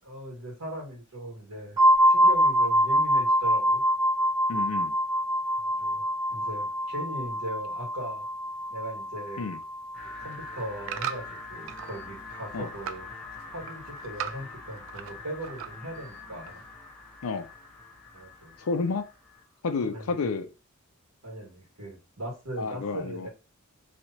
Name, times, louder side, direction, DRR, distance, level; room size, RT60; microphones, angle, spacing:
voice 1, 0.0-1.8 2.1-3.8 5.6-8.2 8.7-9.5 10.2-13.1 13.5-16.6 18.1-18.6 19.7-20.2 21.2-23.3, right 1 dB, 85° right, -2 dB, 1.8 m, -39 dB
sound 1, 1.8-11.4, equal, 20° right, 1.4 m, -25 dB
voice 2, 4.5-4.9 9.4-9.6 12.5-12.7 17.2-17.5 18.6-19.1 19.6-20.5 22.6-23.3, left 4 dB, 70° left, 9 dB, 0.5 m, -30 dB
sound 2, 9.9-19.4, left 3 dB, 5° left, 0.9 m, -45 dB
sound 3, 10.1-11.9 12.3-13.1 13.4-15.2 15.4-16.0 16.5-16.6, right 9 dB, 60° right, 0.3 m, -38 dB
3.2 x 2.8 x 2.8 m, 0.30 s
head